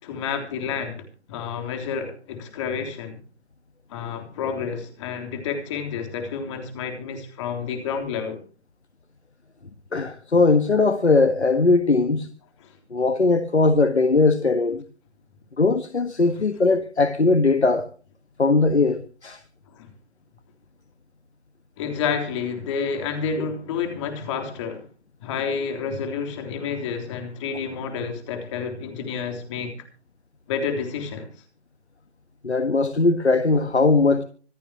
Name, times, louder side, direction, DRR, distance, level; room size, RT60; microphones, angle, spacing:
voice 1, 0.0-3.2 3.9-8.4 12.6-12.7 19.7-19.9 21.8-24.9 25.2-29.7 30.5-31.3, left 6 dB, 25° left, 3.5 m, -29 dB
voice 2, 9.9-12.3 12.9-14.8 15.6-17.9 18.4-19.4 23.4-23.5 32.4-34.2, left 3 dB, 80° left, 1.6 m, -19 dB
26.0 x 9.1 x 2.9 m
figure-of-eight pair, 140°, 33 cm